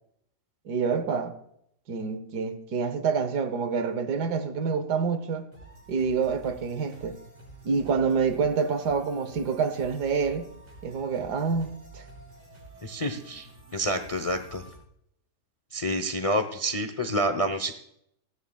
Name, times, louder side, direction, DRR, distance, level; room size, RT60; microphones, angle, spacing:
voice 1, 0.7-1.3 1.9-5.5 5.9-7.2 7.6-10.5 10.8-12.0, right 5 dB, 70° right, 1.5 m, -27 dB
sound 1, 5.5-14.8, right 2 dB, 85° right, 6.8 m, -49 dB
voice 2, 12.8-14.6 15.7-17.7, equal, 40° left, 0.5 m, -28 dB
18.5 x 13.5 x 2.3 m
omnidirectional pair, 1.8 m